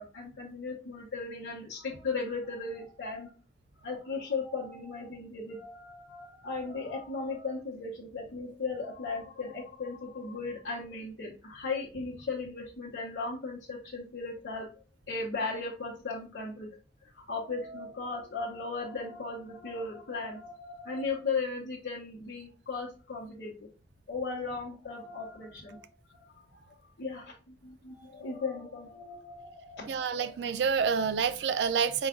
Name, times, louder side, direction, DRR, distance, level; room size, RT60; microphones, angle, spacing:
voice 1, 0.0-3.3 3.8-14.7 15.1-16.7 17.0-23.5 24.1-25.9 26.1-30.4, left 4 dB, 85° left, 0.9 m, -37 dB
voice 2, 29.9-32.1, right 6 dB, 70° right, 0.4 m, -28 dB
4.7 x 2.3 x 3.6 m
head